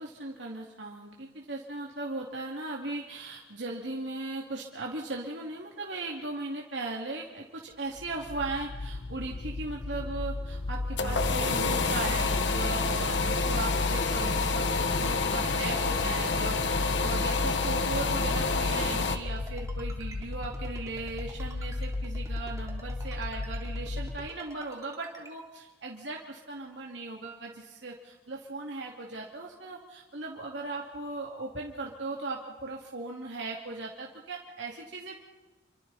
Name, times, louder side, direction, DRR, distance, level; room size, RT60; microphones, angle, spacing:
voice 1, 0.0-35.2, right 2 dB, 75° right, -2 dB, 2.6 m, -38 dB
sound 1, 8.0-24.3, left 2 dB, 50° left, 0.7 m, -34 dB
sound 2, 10.6-19.2, left 4 dB, 70° left, 1.5 m, -29 dB
Ringtone, 18.5-25.3, right 2 dB, 20° right, 3.4 m, -50 dB
28.5 x 25.0 x 4.3 m, 1.2 s
head